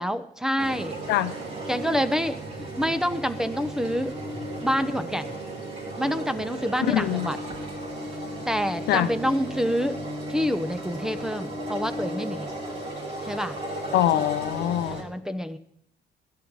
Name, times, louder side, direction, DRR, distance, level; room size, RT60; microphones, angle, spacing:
voice 1, 0.0-1.0 1.7-2.4 2.8-4.1 4.6-5.3 6.0-7.4 8.5-10.0 10.3-12.5 13.3-13.6 14.8-15.6, equal, 5° right, 0.8 m, -27 dB
sound 1, 0.6-15.0, right 1 dB, 35° right, 3.8 m, -35 dB
voice 2, 6.9-7.3 8.9-9.1 13.9-15.0, left 13 dB, 80° left, 0.7 m, -23 dB
16.0 x 11.0 x 4.8 m
cardioid pair, 110°, 17 cm